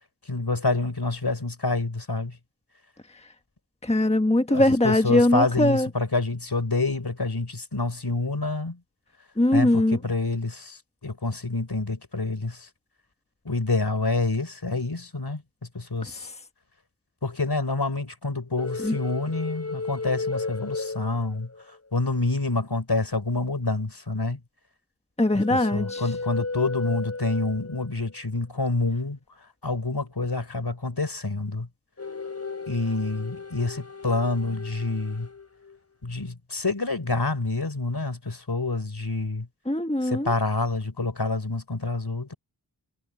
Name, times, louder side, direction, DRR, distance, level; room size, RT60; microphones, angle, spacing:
voice 1, 0.2-2.4 4.5-8.8 9.5-12.7 13.4-15.4 15.7-16.3 17.2-24.4 25.3-29.2 29.6-31.7 32.7-35.3 36.0-39.5 40.0-42.3, left 3 dB, 60° left, 4.4 m, -27 dB
voice 2, 3.8-5.9 9.4-10.0 18.8-19.0 25.2-26.0 39.7-40.3, left 1 dB, 15° left, 1.4 m, -21 dB
sound 1, 18.6-21.8 25.3-27.9 32.0-35.8, left 3 dB, 35° left, 5.6 m, -35 dB
wide cardioid pair, 40°, 43 cm